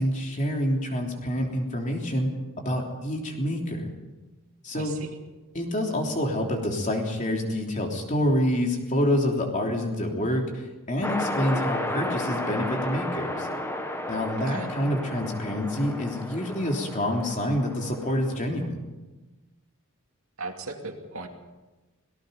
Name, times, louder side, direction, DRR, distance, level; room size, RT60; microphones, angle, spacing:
voice 1, 0.0-2.3 2.6-3.9 4.6-5.0 5.5-13.5 14.1-18.8, left 1 dB, 35° left, 1 dB, 3.4 m, -27 dB
voice 2, 4.7-5.1 14.4-14.7 20.4-21.3, right 3 dB, 65° right, 3 dB, 2.6 m, -37 dB
sound 1, 11.0-18.4, left 1 dB, 10° left, 1.6 m, -33 dB
26.5 x 18.5 x 5.3 m, 1.1 s
head